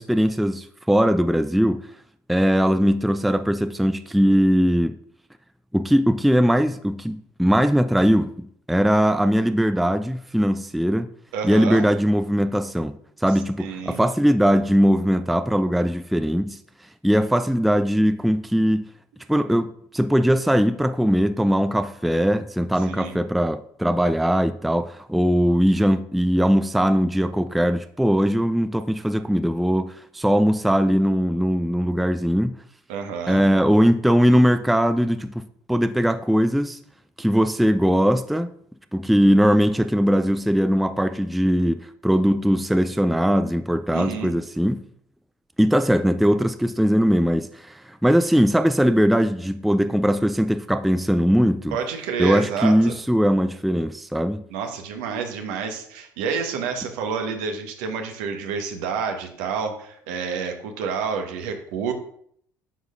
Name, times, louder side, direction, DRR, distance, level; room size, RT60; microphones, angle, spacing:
voice 1, 0.0-1.8 2.3-5.0 5.7-11.1 11.4-16.6 17.0-18.8 19.3-32.6 33.3-36.8 37.2-38.5 38.9-44.8 45.6-51.8 52.2-54.4, equal, ahead, 0.4 m, -20 dB
voice 2, 11.3-11.9 13.6-14.0 22.9-23.2 32.9-33.4 43.9-44.3 51.7-53.0 54.5-61.9, right 6 dB, 65° right, 1.2 m, -29 dB
9.7 x 6.5 x 2.5 m
figure-of-eight pair, 60°, 11 cm